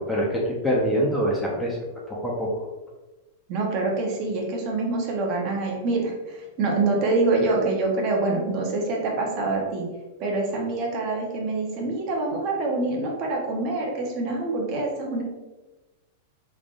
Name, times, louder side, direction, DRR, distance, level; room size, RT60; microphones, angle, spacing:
voice 1, 0.0-1.8 2.1-2.5, equal, 5° left, -3 dB, 0.8 m, -24 dB
voice 2, 3.5-9.8 10.2-15.2, right 3 dB, 40° right, 0 dB, 1.0 m, -25 dB
5.1 x 3.5 x 2.5 m, 1.1 s
supercardioid pair, 145°, 0 cm